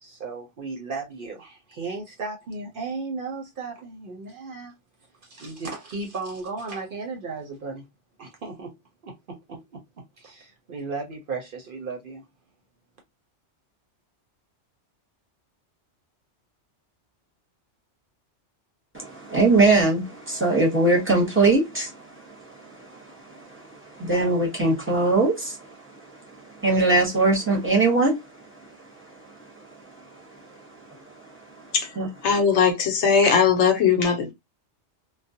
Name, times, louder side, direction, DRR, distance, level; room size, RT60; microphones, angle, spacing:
voice 1, 0.0-4.7 5.2-7.9 8.2-8.7 9.0-9.8 10.2-12.2, right 4 dB, 55° right, 0.7 m, -35 dB
voice 2, 18.9-32.1, right 3 dB, 10° right, 0.8 m, -23 dB
voice 3, 32.2-34.3, left 6 dB, 75° left, 0.9 m, -19 dB
2.3 x 2.0 x 2.6 m
omnidirectional pair, 1.2 m